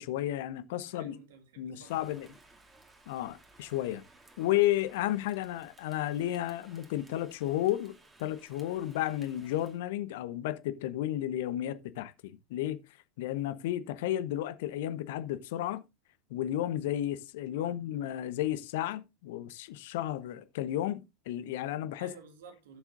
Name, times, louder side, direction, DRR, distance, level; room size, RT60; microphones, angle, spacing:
voice 1, 0.0-1.1 1.6-2.3 3.1-4.0 4.4-12.8 13.2-15.8 16.3-22.1, left 13 dB, 60° left, 1.0 m, -33 dB
voice 2, 0.8-2.2 17.5-17.7 22.0-22.8, right 5 dB, 65° right, 2.3 m, -52 dB
Rain, 1.8-9.8, right 2 dB, 20° right, 2.5 m, -59 dB
16.5 x 7.2 x 2.6 m
figure-of-eight pair, 80°, 0 cm